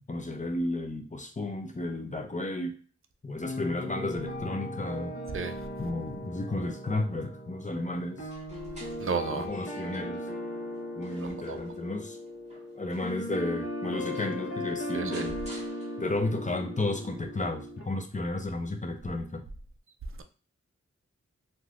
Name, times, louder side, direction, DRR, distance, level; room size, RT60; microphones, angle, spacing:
voice 1, 0.1-2.8 3.2-5.1 5.8-8.3 9.3-10.3 10.9-12.2 12.7-15.4 16.0-19.4, left 2 dB, 25° left, 0.5 m, -33 dB
sound 1, 3.4-17.8, equal, 45° left, 1.0 m, -38 dB
sound 2, 8.2-10.2 10.7-13.3 13.8-13.9 14.1-16.4, right 1 dB, 25° right, 1.4 m, -52 dB
voice 2, 9.0-9.5 11.1-11.6 14.9-15.2, right 6 dB, 45° right, 0.4 m, -33 dB
3.2 x 2.6 x 2.4 m
wide cardioid pair, 55°, 29 cm